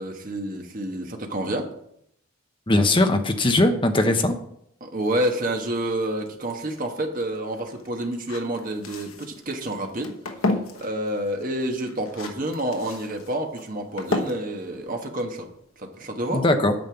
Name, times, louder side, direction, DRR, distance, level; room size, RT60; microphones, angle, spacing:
voice 1, 0.0-1.7 4.8-10.2 10.5-15.5 15.8-16.4, right 1 dB, 40° right, 3 dB, 1.3 m, -29 dB
voice 2, 2.7-4.3 16.3-16.7, left 2 dB, 25° left, 6 dB, 0.8 m, -20 dB
sound 1, 5.0-15.8, left 2 dB, 85° left, 1.2 m, -34 dB
9.0 x 5.5 x 6.9 m, 0.74 s
head